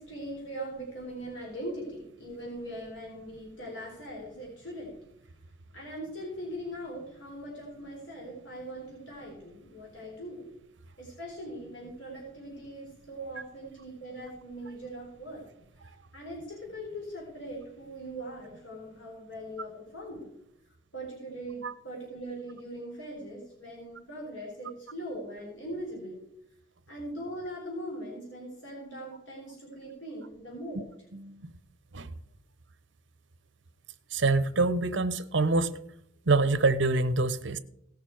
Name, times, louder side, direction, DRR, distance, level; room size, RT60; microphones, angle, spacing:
voice 1, 0.0-5.0 5.7-10.5 11.0-15.4 15.8-20.3 20.9-26.2 26.9-30.8, right 1 dB, 80° left, -3 dB, 4.0 m, -41 dB
voice 2, 31.1-31.5 31.9-32.1 34.1-35.7 36.3-37.6, right 3 dB, 75° right, 14 dB, 0.8 m, -26 dB
17.5 x 6.6 x 4.7 m, 0.77 s
head